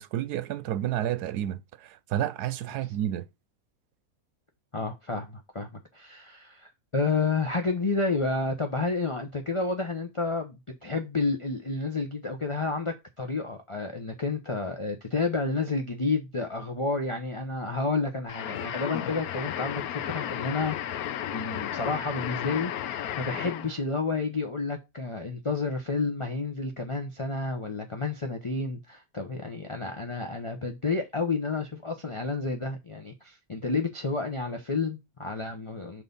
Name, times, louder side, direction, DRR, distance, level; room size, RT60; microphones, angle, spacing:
voice 1, 0.0-3.3, right 11 dB, 85° right, 1.2 m, -30 dB
voice 2, 4.7-5.7 5.9-21.0 21.3-36.0, left 3 dB, 30° left, 0.6 m, -30 dB
sound 1, 18.3-23.8, left 11 dB, 75° left, 1.1 m, -33 dB
6.3 x 4.1 x 5.3 m
omnidirectional pair, 1.7 m